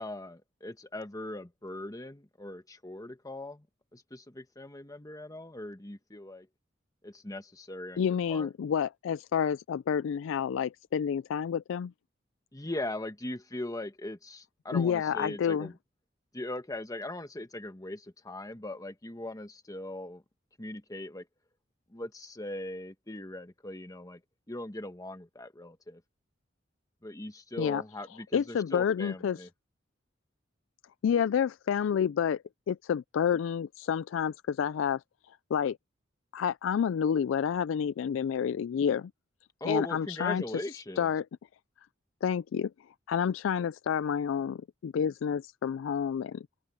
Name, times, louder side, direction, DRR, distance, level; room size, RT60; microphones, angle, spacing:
voice 1, 0.0-3.7 3.9-6.5 7.0-8.5 12.5-15.8 16.3-20.2 20.6-21.3 21.9-24.2 24.5-26.0 27.0-29.5 39.6-41.1, left 1 dB, 20° left, 1.3 m, -40 dB
voice 2, 8.0-11.9 14.7-15.7 27.6-27.8 28.3-29.4 31.0-32.4 32.7-35.0 35.5-35.8 36.3-39.1 39.6-40.4 41.0-41.2 42.2-42.7 43.1-46.5, left 7 dB, 80° left, 0.3 m, -29 dB
open air
head